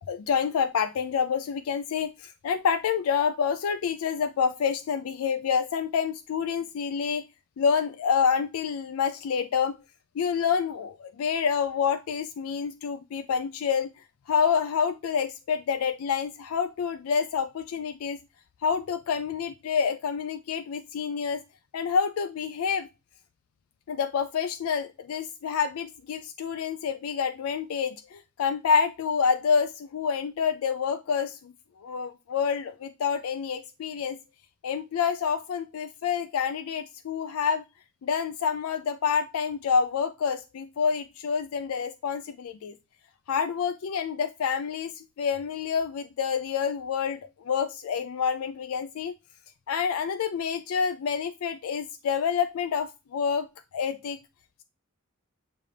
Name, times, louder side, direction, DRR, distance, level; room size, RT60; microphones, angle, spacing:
voice 1, 0.1-7.2 7.6-9.7 10.2-13.9 14.3-18.2 18.6-21.4 21.7-22.9 23.9-31.5 31.8-34.2 34.6-37.6 38.0-42.7 43.3-49.1 49.7-53.5 53.7-54.2, left 6 dB, 80° left, 0.4 m, -28 dB
6.7 x 2.5 x 3.2 m
head